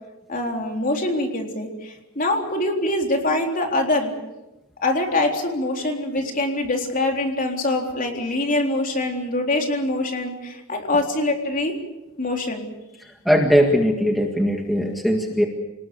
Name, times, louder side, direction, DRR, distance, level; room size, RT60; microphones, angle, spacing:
voice 1, 0.3-4.1 4.8-11.8 12.2-12.7, left 2 dB, 35° left, 2 dB, 3.8 m, -24 dB
voice 2, 13.0-15.5, equal, ahead, 2 dB, 1.8 m, -20 dB
28.5 x 19.5 x 7.1 m, 0.97 s
head